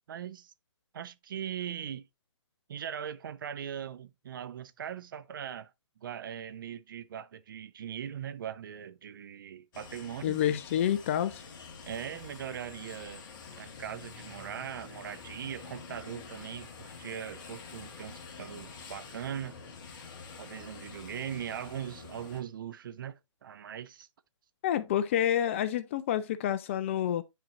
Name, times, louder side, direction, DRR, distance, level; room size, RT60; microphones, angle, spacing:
voice 1, 0.1-0.5 0.9-2.1 2.7-5.7 6.0-10.4 11.9-13.2 13.6-19.6 20.4-24.1, right 9 dB, 45° right, 0.4 m, -40 dB
sound 1, 9.7-22.4, left 5 dB, 40° left, 1.2 m, -47 dB
voice 2, 10.2-11.4 24.6-27.2, left 10 dB, 25° left, 0.4 m, -28 dB
9.2 x 4.3 x 2.4 m
figure-of-eight pair, 140°, 16 cm